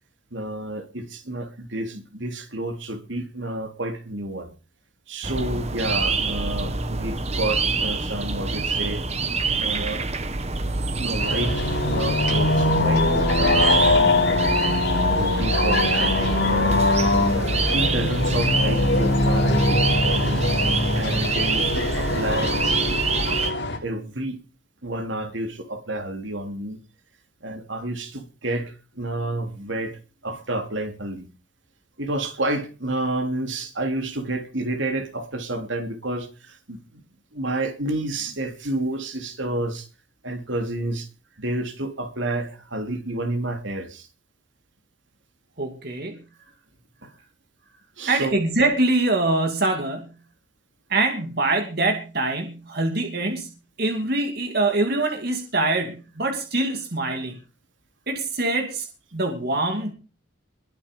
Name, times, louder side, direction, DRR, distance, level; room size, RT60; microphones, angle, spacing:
voice 1, 0.3-4.5 5.1-9.1 9.6-10.0 11.0-14.4 15.1-16.8 17.3-20.4 20.9-23.0 23.3-23.5 23.8-24.4 24.8-26.8 27.4-31.3 32.0-37.0 37.3-39.9 40.2-41.1 41.4-44.1 47.0-47.1 48.0-48.3, right 1 dB, 70° right, 3.2 m, -30 dB
sound 1, 5.2-23.5, right 3 dB, 35° right, 1.4 m, -26 dB
sound 2, 11.2-23.8, left 2 dB, 60° left, 6.6 m, -22 dB
voice 2, 45.6-46.2 48.1-50.1 50.9-53.5 53.8-57.4 58.1-58.9 59.1-59.9, right 2 dB, 50° right, 2.6 m, -24 dB
22.0 x 8.7 x 5.3 m
head